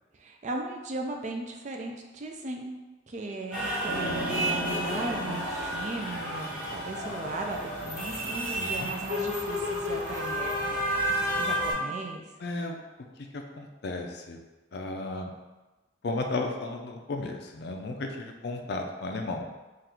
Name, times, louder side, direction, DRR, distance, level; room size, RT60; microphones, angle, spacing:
voice 1, 0.2-2.7 3.1-10.8 11.4-12.2, right 2 dB, 40° right, 2 dB, 0.4 m, -37 dB
sound 1, 3.5-11.7, equal, 5° right, 1.2 m, -31 dB
sound 2, 3.9-9.1, right 2 dB, 60° right, 0.8 m, -41 dB
voice 2, 8.6-8.9 12.4-12.8 13.6-14.4 14.7-15.3 16.0-19.5, left 2 dB, 55° left, 3 dB, 0.4 m, -34 dB
3.8 x 2.4 x 4.3 m, 1.1 s
head